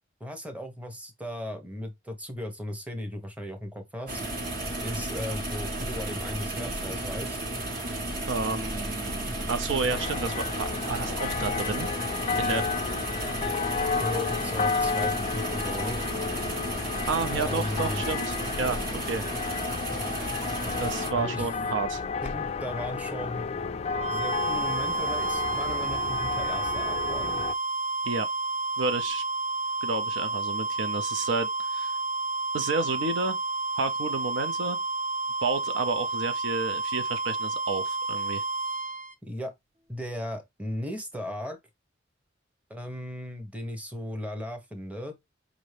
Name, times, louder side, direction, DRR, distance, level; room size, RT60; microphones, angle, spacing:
voice 1, 0.2-4.2 4.8-7.4 12.2-12.6 14.0-16.1 17.3-18.0 21.1-21.5 22.2-23.5 24.1-27.4 39.2-39.5 39.9-41.6 42.7-45.1, left 1 dB, 10° right, 0.8 m, -36 dB
sound 1, 4.1-21.1, right 1 dB, 55° right, 1.4 m, -33 dB
voice 2, 8.3-11.9 12.4-12.6 17.0-19.2 20.8-22.0 28.0-28.3 28.8-29.2 29.8-31.9 32.5-33.4 33.8-34.8 35.4-38.4, right 4 dB, 85° right, 0.5 m, -31 dB
sound 2, 9.9-27.5, left 5 dB, 35° left, 0.3 m, -32 dB
sound 3, 23.8-39.1, right 3 dB, 35° right, 0.4 m, -30 dB
4.9 x 2.6 x 3.2 m
head